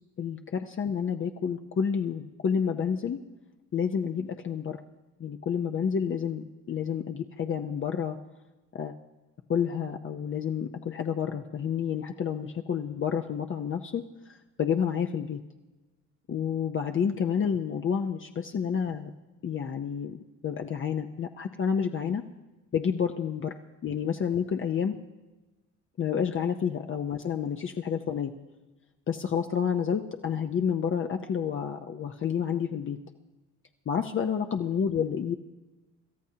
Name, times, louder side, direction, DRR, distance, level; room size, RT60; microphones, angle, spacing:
voice 1, 0.2-3.2 3.7-4.8 5.2-8.2 8.7-8.9 9.5-14.0 14.6-15.4 16.3-19.1 19.4-20.2 20.4-22.2 22.7-23.5 23.8-25.0 26.0-28.3 29.1-33.0 33.9-35.4, left 7 dB, 45° left, 5 dB, 0.7 m, -29 dB
26.5 x 13.0 x 2.8 m, 1.1 s
cardioid pair, 90°, 30 cm